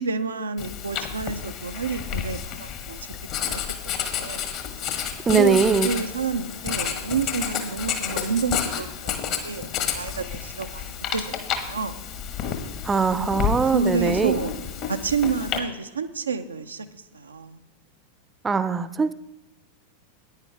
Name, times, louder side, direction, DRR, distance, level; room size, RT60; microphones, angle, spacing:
voice 1, 0.0-3.0 3.4-3.6 4.0-4.5 5.3-12.0 13.2-14.6 14.9-16.9 17.1-17.6, right 5 dB, 75° right, 8 dB, 0.6 m, -29 dB
Writing, 0.6-15.6, left 8 dB, 40° left, 1.3 m, -30 dB
voice 2, 5.3-5.9 12.8-14.4 18.4-19.1, right 5 dB, 15° right, 10 dB, 0.5 m, -21 dB
15.0 x 9.7 x 3.4 m, 0.92 s
figure-of-eight pair, 90°, 0 cm